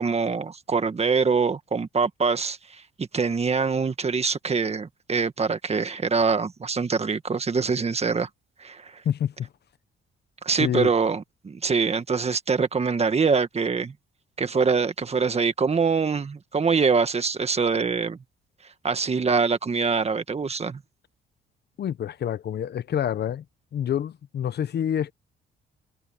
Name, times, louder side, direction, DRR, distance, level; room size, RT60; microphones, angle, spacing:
voice 1, 0.0-8.3 8.6-9.0 10.4-13.9 14.4-18.2 18.8-20.8, right 5 dB, 30° right, 1.6 m, -24 dB
voice 2, 9.0-9.5 10.6-10.9 21.8-23.4 23.7-25.1, left 9 dB, 55° left, 0.9 m, -27 dB
cardioid pair, 90°, 20 cm